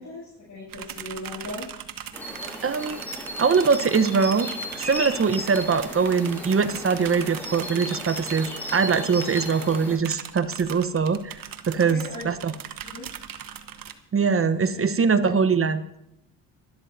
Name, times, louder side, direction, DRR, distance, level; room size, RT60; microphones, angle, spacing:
voice 1, 0.0-1.7 11.7-12.3 12.8-13.1 14.7-14.9 15.2-15.4, left 2 dB, 40° left, -6 dB, 7.0 m, -38 dB
sound 1, 0.7-13.9, right 9 dB, 45° right, 1.3 m, -40 dB
sound 2, 2.1-10.0, left 1 dB, 5° left, 6.7 m, -35 dB
voice 2, 2.6-3.0 3.4-4.5 4.8-11.4 11.7-12.5 14.1-15.8, right 5 dB, 30° right, 13 dB, 0.9 m, -22 dB
24.5 x 12.5 x 2.7 m, 0.82 s
hypercardioid pair, 60°, 46 cm